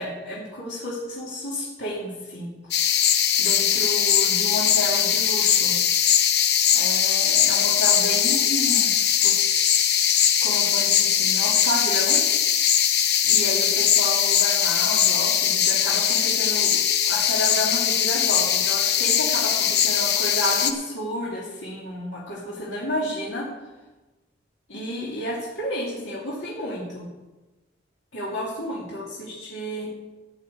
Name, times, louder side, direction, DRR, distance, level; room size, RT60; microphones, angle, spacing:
voice 1, 0.0-3.1 3.4-5.8 6.7-9.4 10.4-12.2 13.2-23.5 24.7-27.1 28.1-29.9, equal, 75° left, -6 dB, 2.6 m, -31 dB
sound 1, 2.7-20.7, left 9 dB, 60° left, 0.8 m, -21 dB
13.5 x 5.7 x 8.5 m, 1.1 s
head